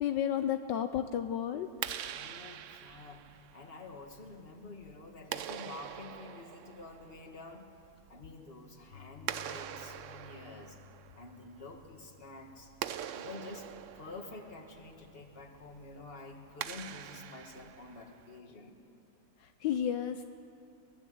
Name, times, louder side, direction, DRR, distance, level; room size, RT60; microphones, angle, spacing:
voice 1, 0.0-1.7 19.6-20.3, left 9 dB, 75° left, 8 dB, 1.4 m, -32 dB
Clapping, 1.6-18.4, right 10 dB, 65° right, 0.7 m, -45 dB
voice 2, 2.1-7.7 8.1-10.8 11.2-12.7 13.1-13.7 13.9-18.8, left 3 dB, 30° left, 3 dB, 2.2 m, -49 dB
Piano, 8.9-17.0, left 12 dB, 50° left, 1.2 m, -60 dB
22.5 x 21.0 x 8.0 m, 2.6 s
omnidirectional pair, 2.0 m